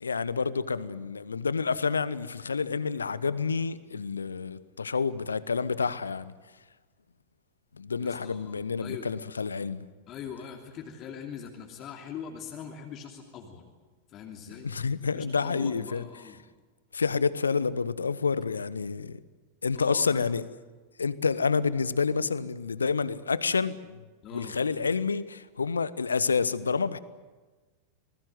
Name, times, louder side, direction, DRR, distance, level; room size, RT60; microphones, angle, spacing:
voice 1, 0.0-6.3 7.7-9.8 14.5-16.1 16.9-19.2 19.6-20.4 21.0-24.0 24.3-27.0, left 5 dB, 75° left, 0.9 m, -29 dB
voice 2, 8.0-9.1 10.1-13.6 14.1-14.7 15.1-16.4 19.8-20.3 24.2-24.6, left 7 dB, 35° left, 3.0 m, -42 dB
27.5 x 20.5 x 7.9 m
figure-of-eight pair, 90°, 0 cm